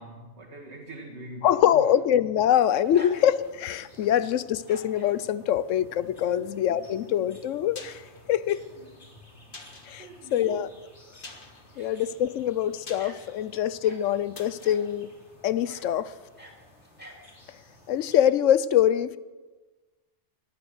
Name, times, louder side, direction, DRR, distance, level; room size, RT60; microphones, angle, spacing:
voice 1, 0.0-1.9 2.4-2.9 3.9-4.1 6.2-7.0 8.7-9.1 10.0-10.7 11.7-11.9, right 2 dB, 60° right, -2 dB, 2.0 m, -45 dB
voice 2, 1.4-8.0 8.3-8.6 9.9-10.1 10.3-10.7 11.8-15.1 15.4-16.1 17.9-19.2, left 10 dB, 80° left, 17 dB, 1.0 m, -24 dB
sound 1, 2.4-3.7 4.5-5.2 6.4-7.0 7.4-7.5 8.9-9.0 9.2-9.3 12.2-12.4 13.0-14.1 14.6-14.9 15.6-15.9 16.2-17.2, left 1 dB, 10° right, 2.6 m, -48 dB
sound 2, 2.8-18.2, left 1 dB, 60° left, 3.2 m, -55 dB
sound 3, 7.7-16.2 16.5-16.6, left 3 dB, 45° left, 1.7 m, -50 dB
18.0 x 11.5 x 6.5 m, 1.3 s
omnidirectional pair, 1.3 m